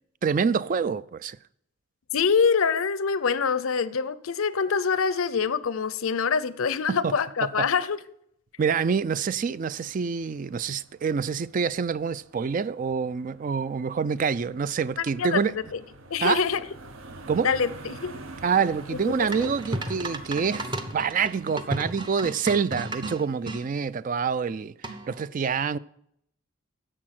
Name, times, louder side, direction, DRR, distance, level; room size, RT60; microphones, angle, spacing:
voice 1, 0.2-1.4 6.9-7.1 7.6-7.7 8.6-15.5 16.2-16.4 17.3-17.5 18.4-24.7 25.1-25.8, right 6 dB, 40° right, 0.3 m, -26 dB
voice 2, 2.1-8.0 15.0-15.4 15.7-15.8 16.1-16.7 17.4-18.1 19.1-19.5, left 6 dB, 85° left, 0.6 m, -25 dB
sound 1, 8.6-22.0, right 2 dB, 70° right, 1.0 m, -46 dB
sound 2, 19.3-23.6 24.8-25.3, right 1 dB, 20° right, 0.8 m, -34 dB
11.0 x 7.7 x 5.9 m
head